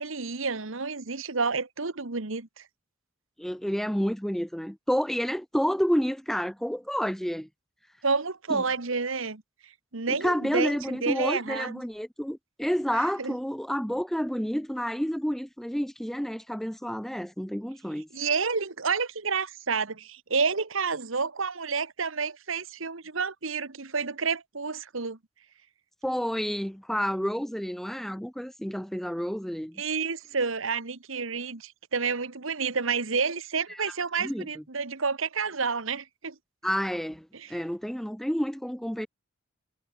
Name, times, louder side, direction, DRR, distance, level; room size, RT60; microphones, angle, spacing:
voice 1, 0.0-2.5 8.0-9.4 9.9-11.8 13.2-13.3 18.1-25.2 29.8-36.3 37.3-37.5, right 5 dB, 80° right, 1.5 m, -29 dB
voice 2, 3.4-7.5 8.5-8.6 10.1-18.1 26.0-29.8 33.7-33.8 34.2-34.6 36.6-39.1, equal, ahead, 0.5 m, -30 dB
head